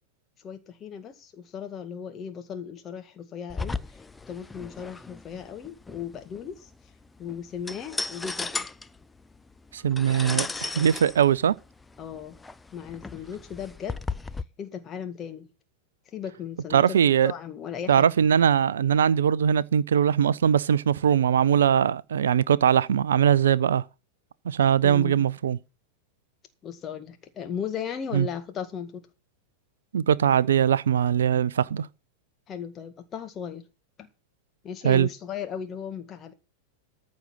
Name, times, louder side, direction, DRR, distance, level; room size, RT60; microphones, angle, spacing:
voice 1, 0.4-6.7 7.2-8.7 12.0-12.4 12.7-14.0 14.6-15.5 16.1-18.1 24.8-25.2 26.6-29.0 32.5-33.6 34.0-34.1 34.6-36.3, left 8 dB, 25° left, 1.9 m, -36 dB
sound 1, 3.5-14.4, left 3 dB, 10° left, 0.5 m, -36 dB
voice 2, 9.7-11.5 16.7-17.3 17.9-23.8 24.5-25.6 28.1-28.3 29.9-31.9 34.8-35.1, right 8 dB, 65° right, 0.5 m, -21 dB
14.0 x 5.3 x 7.4 m
figure-of-eight pair, 90°, 0 cm